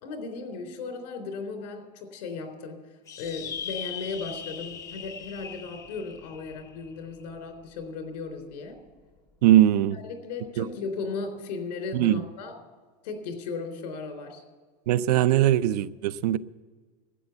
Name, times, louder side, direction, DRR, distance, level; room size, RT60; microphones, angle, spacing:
voice 1, 0.0-2.8 3.2-8.8 9.9-12.5 13.0-14.4, left 4 dB, 85° left, 3.7 m, -36 dB
sound 1, 3.1-7.8, left 7 dB, 15° left, 0.5 m, -40 dB
voice 2, 9.4-10.0 10.6-10.7 11.9-12.2 14.9-16.4, right 13 dB, 70° right, 0.6 m, -20 dB
12.5 x 8.9 x 9.0 m
supercardioid pair, 170°, 21 cm